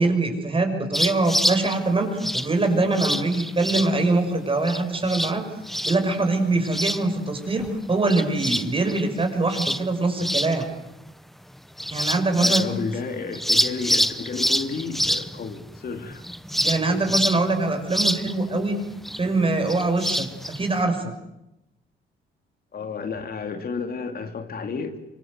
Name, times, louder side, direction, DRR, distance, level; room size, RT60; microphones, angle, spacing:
voice 1, 0.0-5.4 5.8-10.7 11.9-12.6 16.6-18.8 19.2-20.3 20.5-21.1, right 2 dB, 25° right, 6 dB, 6.2 m, -23 dB
sound 1, 0.9-1.8 2.2-2.5 3.0-3.9 4.7-4.8 5.1-5.4 5.7-6.2 6.6-7.3 7.6-10.7 11.1-11.2 11.8-12.9 13.3-20.8, equal, ahead, 0.9 m, -26 dB
voice 2, 12.4-16.2 22.7-25.0, left 4 dB, 50° left, 6 dB, 2.8 m, -31 dB
25.5 x 23.0 x 8.1 m, 0.89 s
cardioid pair, 90°, 20 cm